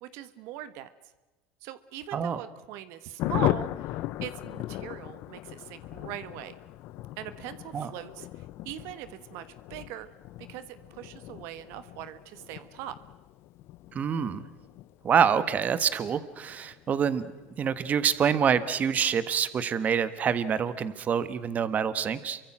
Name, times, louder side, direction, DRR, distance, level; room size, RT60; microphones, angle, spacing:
voice 1, 0.0-0.9 1.6-3.7 4.2-6.5 7.2-8.3 8.6-10.1 10.5-12.9, right 12 dB, 70° right, 12 dB, 1.3 m, -40 dB
voice 2, 2.1-2.4 7.7-7.9 13.9-14.4 15.0-17.3 17.6-22.4, right 7 dB, 35° right, 14 dB, 1.4 m, -26 dB
Thunder, 3.2-19.3 19.6-19.7 20.0-20.1 20.4-20.8, left 15 dB, 60° left, 0.8 m, -37 dB
28.5 x 24.5 x 6.1 m, 1.2 s
supercardioid pair, 120°, 5 cm